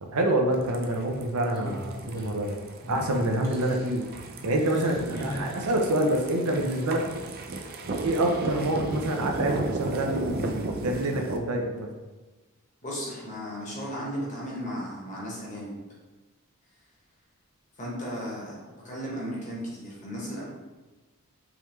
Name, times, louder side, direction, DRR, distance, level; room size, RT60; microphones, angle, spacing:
voice 1, 0.0-2.6 2.9-4.0 4.4-7.0 8.0-11.9, right 1 dB, 85° right, 2 dB, 0.6 m, -27 dB
sound 1, 0.5-11.4, right 2 dB, 45° right, 0.3 m, -35 dB
sound 2, 1.5-2.4 2.8-3.1 3.4-3.9 4.6-5.5 6.4-6.8, equal, 15° left, 0.5 m, -37 dB
voice 2, 12.8-15.7 17.8-18.5 18.8-20.4, equal, 35° left, -5 dB, 1.0 m, -35 dB
3.6 x 3.2 x 3.0 m, 1.2 s
head